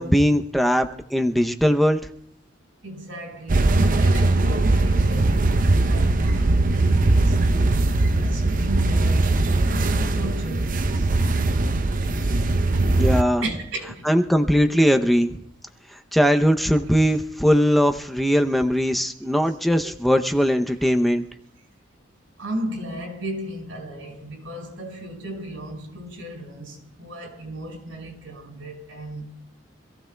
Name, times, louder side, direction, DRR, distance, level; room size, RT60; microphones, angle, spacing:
voice 1, 0.0-2.0 12.9-13.4 14.0-15.4 15.9-21.2, equal, ahead, 0.6 m, -20 dB
voice 2, 2.8-7.4 7.9-11.1 13.4-14.0 20.8-20.9 22.4-29.3, equal, 90° right, 5.3 m, -34 dB
sound 1, 3.5-13.2, right 2 dB, 45° right, 0.6 m, -20 dB
26.0 x 15.5 x 2.3 m
head